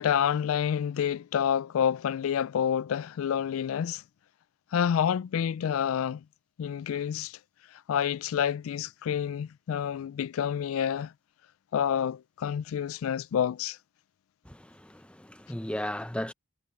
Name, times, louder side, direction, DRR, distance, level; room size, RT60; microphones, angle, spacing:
voice 1, 0.0-4.0 4.7-6.2 6.6-7.4 7.9-11.1 11.7-13.8, left 8 dB, 85° left, 0.3 m, -28 dB
voice 2, 14.5-16.3, left 1 dB, 5° left, 0.7 m, -35 dB
head